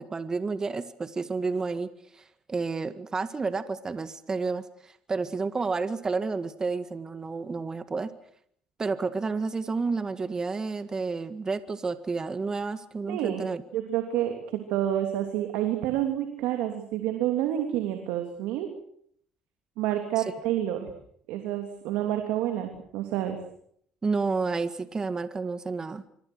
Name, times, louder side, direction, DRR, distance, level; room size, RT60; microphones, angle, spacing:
voice 1, 0.0-2.2 2.5-8.1 8.8-13.6 20.2-20.3 24.0-26.0, right 4 dB, 30° right, 11 dB, 1.9 m, -30 dB
voice 2, 13.1-13.4 13.7-18.7 19.8-20.9 21.3-23.4, right 12 dB, 80° right, 5 dB, 3.1 m, -29 dB
26.0 x 24.0 x 6.4 m, 0.66 s
supercardioid pair, 70°, 2 cm